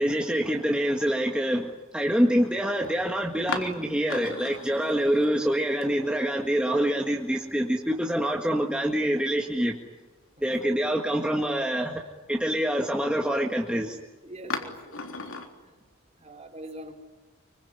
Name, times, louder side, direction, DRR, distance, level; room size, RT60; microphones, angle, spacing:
voice 1, 0.0-9.7 10.4-12.0 12.3-14.0, equal, 5° right, 0 dB, 1.8 m, -26 dB
sound 1, 2.0-2.1 2.8-3.0 3.5-6.4 6.6-6.7 8.2-8.9 9.4-9.5 10.0-10.1 14.5-15.5, left 3 dB, 75° left, 3.6 m, -37 dB
voice 2, 10.4-10.8 14.2-15.2 15.6-15.8 16.2-16.9, right 1 dB, 30° right, 3 dB, 4.3 m, -44 dB
25.5 x 24.5 x 9.5 m, 1.2 s
head